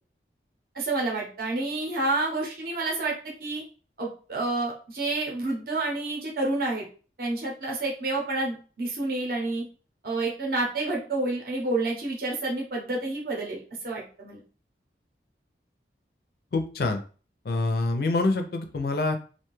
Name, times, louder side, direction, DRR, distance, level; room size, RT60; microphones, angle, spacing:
voice 1, 0.7-3.6 4.0-6.9 7.2-9.6 10.0-14.4, right 2 dB, 55° right, -2 dB, 0.7 m, -29 dB
voice 2, 16.5-17.0 17.4-19.2, left 2 dB, 60° left, 6 dB, 0.4 m, -26 dB
2.6 x 2.2 x 3.0 m, 0.38 s
head